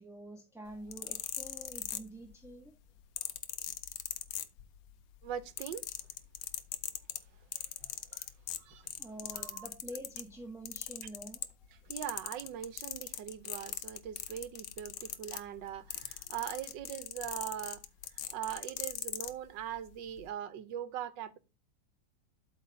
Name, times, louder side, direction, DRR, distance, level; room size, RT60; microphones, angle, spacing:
voice 1, 0.0-2.8 7.8-7.9 9.0-11.5, right 1 dB, ahead, 0.8 m, -47 dB
sound 1, 0.7-2.5 3.2-4.9 5.2-10.3 10.7-11.7 11.9-19.3 20.1-20.2, left 12 dB, 85° left, 1.4 m, -40 dB
voice 2, 5.2-5.8 7.5-8.3 8.6-8.9 9.3-9.7 11.8-17.8 18.1-21.4, right 10 dB, 80° right, 1.4 m, -41 dB
8.0 x 4.0 x 5.6 m
omnidirectional pair, 1.9 m